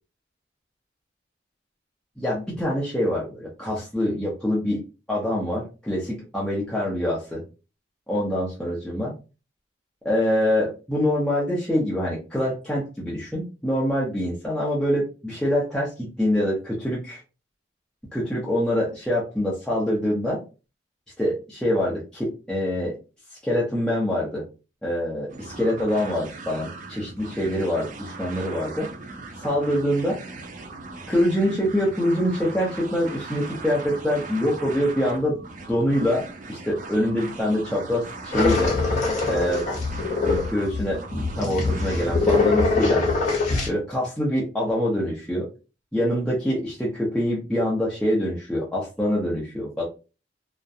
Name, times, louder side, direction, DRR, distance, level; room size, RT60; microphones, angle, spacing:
voice 1, 2.2-4.8 5.1-7.4 8.1-9.1 10.0-17.2 18.1-20.4 21.2-23.0 23.4-24.4 24.8-28.9 29.4-30.2 31.1-35.4 35.7-38.7 39.2-39.6 40.2-41.0 41.4-43.0 43.7-45.5 45.9-49.8, equal, 5° left, -7 dB, 0.6 m, -25 dB
sound 1, 25.3-42.9, right 3 dB, 45° right, 0.4 m, -39 dB
sound 2, 38.3-43.7, left 3 dB, 40° left, 0.7 m, -23 dB
2.4 x 2.1 x 2.6 m, 0.31 s
head